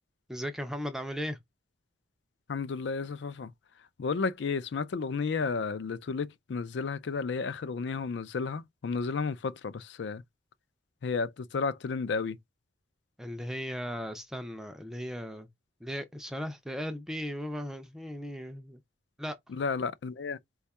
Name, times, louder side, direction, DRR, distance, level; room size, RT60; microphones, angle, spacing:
voice 1, 0.3-1.4 13.2-15.5 15.8-18.8 19.2-19.4, equal, ahead, 0.4 m, -37 dB
voice 2, 2.5-3.5 4.0-10.2 11.0-12.4 19.5-20.4, left 4 dB, 65° left, 0.4 m, -32 dB
4.3 x 2.3 x 4.0 m
head